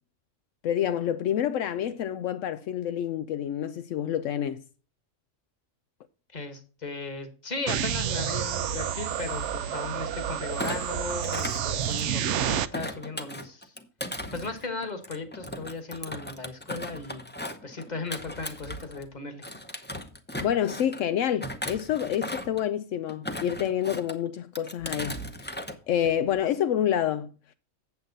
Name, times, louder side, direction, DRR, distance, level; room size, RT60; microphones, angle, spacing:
voice 1, 0.6-4.6 20.4-27.3, left 10 dB, 80° left, 0.9 m, -28 dB
voice 2, 6.3-13.7 14.3-17.3 17.6-19.5, left 3 dB, 35° left, 1.5 m, -37 dB
sound 1, 7.7-12.7, right 9 dB, 70° right, 0.9 m, -29 dB
Thump thud, 10.5-12.3 12.7-19.1 19.4-21.0 21.4-22.6 23.1-24.2 24.6-25.8 26.1-26.4, left 1 dB, 10° left, 0.7 m, -37 dB
8.2 x 7.8 x 4.0 m
omnidirectional pair, 1.3 m